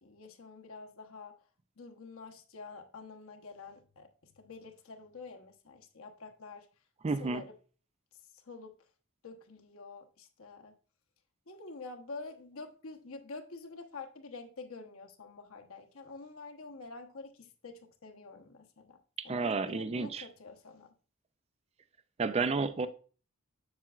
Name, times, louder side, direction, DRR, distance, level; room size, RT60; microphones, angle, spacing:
voice 1, 0.0-1.4 1.8-6.7 7.2-7.5 8.1-8.7 9.2-10.8 11.5-19.0 19.2-20.9, left 3 dB, 70° left, 1.0 m, -48 dB
voice 2, 7.0-7.4 19.2-20.2 22.2-22.9, right 4 dB, 30° right, 0.4 m, -31 dB
7.4 x 7.2 x 2.4 m
head